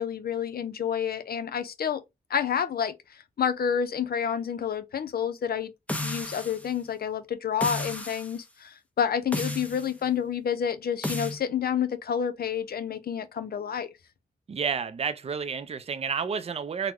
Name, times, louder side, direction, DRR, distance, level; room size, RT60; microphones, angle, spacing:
voice 1, 0.0-2.0 2.3-2.9 3.4-5.7 6.0-13.9, left 8 dB, 80° left, 0.5 m, -29 dB
sound 1, 5.9-6.7 7.6-8.3 9.3-9.9 11.0-11.4, left 1 dB, 10° left, 0.6 m, -32 dB
voice 2, 14.5-16.9, right 6 dB, 40° right, 0.4 m, -30 dB
3.6 x 2.1 x 2.9 m
wide cardioid pair, 105°, 16 cm